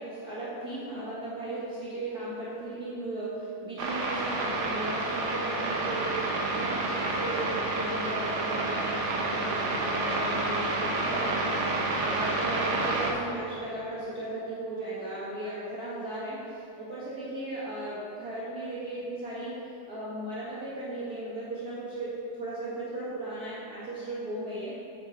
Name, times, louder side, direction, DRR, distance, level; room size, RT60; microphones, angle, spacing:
voice 1, 0.0-19.5 19.9-24.8, right 1 dB, 50° right, -9 dB, 1.7 m, -36 dB
sound 1, 3.8-13.1, right 2 dB, 75° right, 0.6 m, -29 dB
8.2 x 6.4 x 4.4 m, 2.6 s
omnidirectional pair, 2.4 m